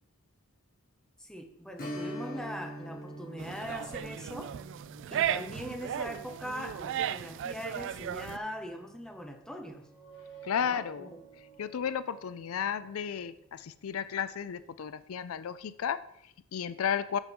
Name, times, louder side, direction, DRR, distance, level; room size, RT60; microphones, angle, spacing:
voice 1, 1.2-4.6 5.1-9.8 10.6-11.1, equal, 5° left, 4 dB, 1.0 m, -41 dB
Strum, 1.8-11.0 11.3-11.4 13.9-14.1 14.6-14.7, equal, 45° left, 1.9 m, -46 dB
sound 1, 3.4-8.4, right 10 dB, 60° right, 0.3 m, -35 dB
sound 2, 9.7-13.2, right 7 dB, 60° left, 2.4 m, -53 dB
voice 2, 10.4-11.1 11.6-17.2, left 8 dB, 80° left, 14 dB, 0.4 m, -33 dB
7.2 x 6.4 x 5.3 m, 0.76 s
head